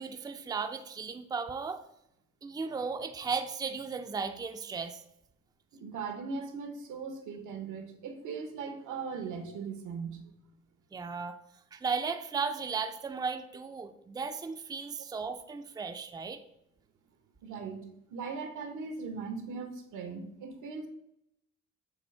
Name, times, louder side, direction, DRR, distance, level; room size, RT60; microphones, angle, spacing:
voice 1, 0.0-1.8 2.4-5.0 10.9-11.4 11.7-16.4, right 5 dB, 15° right, 8 dB, 0.4 m, -35 dB
voice 2, 5.7-10.2 17.4-20.9, right 5 dB, 85° right, 6 dB, 1.2 m, -39 dB
7.2 x 2.5 x 5.4 m, 0.79 s
cardioid pair, 90°, 30 cm